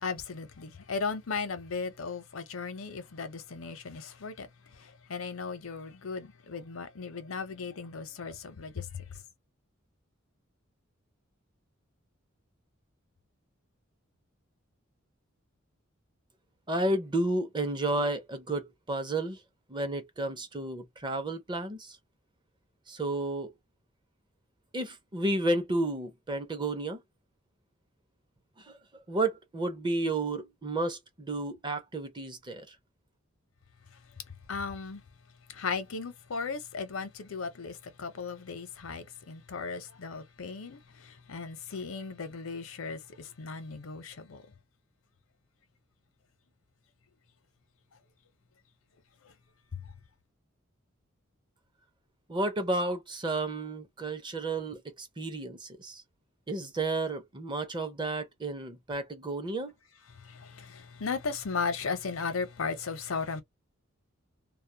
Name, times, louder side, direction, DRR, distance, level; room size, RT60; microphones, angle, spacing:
voice 1, 0.0-4.5 5.1-9.0 34.5-35.0 35.5-40.8 41.3-44.4 60.3-63.4, left 5 dB, 85° left, 0.7 m, -36 dB
voice 2, 16.7-19.4 19.7-22.0 22.9-23.5 24.7-27.0 28.6-28.8 29.1-32.8 52.3-56.0 56.5-59.7, right 2 dB, 25° right, 0.6 m, -32 dB
2.3 x 2.0 x 2.7 m
head